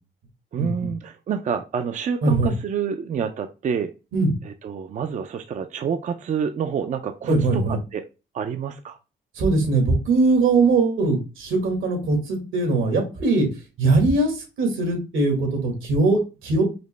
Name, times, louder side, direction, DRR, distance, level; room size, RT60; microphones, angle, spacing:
voice 1, 0.5-3.9 4.6-8.1 8.3-9.0, right 7 dB, 40° right, 8 dB, 0.4 m, -28 dB
voice 2, 2.2-2.5 4.1-4.3 7.3-7.8 9.3-13.5 13.8-16.6, right 3 dB, 80° right, 3 dB, 1.6 m, -21 dB
5.0 x 2.0 x 3.1 m, 0.29 s
cardioid pair, 90°, 20 cm